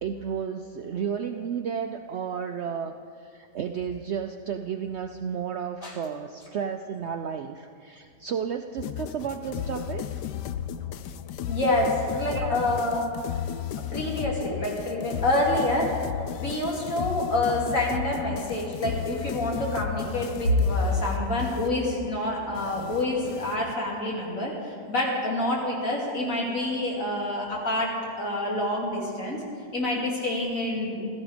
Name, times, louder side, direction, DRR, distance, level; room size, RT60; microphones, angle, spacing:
voice 1, 0.0-2.9 3.3-10.1 12.3-12.6, right 7 dB, 90° right, 7 dB, 0.5 m, -32 dB
sound 1, 8.8-23.7, left 10 dB, 80° left, 1.2 m, -35 dB
voice 2, 11.5-13.0 13.9-29.4 29.7-31.1, left 1 dB, 50° left, -3 dB, 3.2 m, -27 dB
16.0 x 13.5 x 5.0 m, 2.5 s
omnidirectional pair, 1.8 m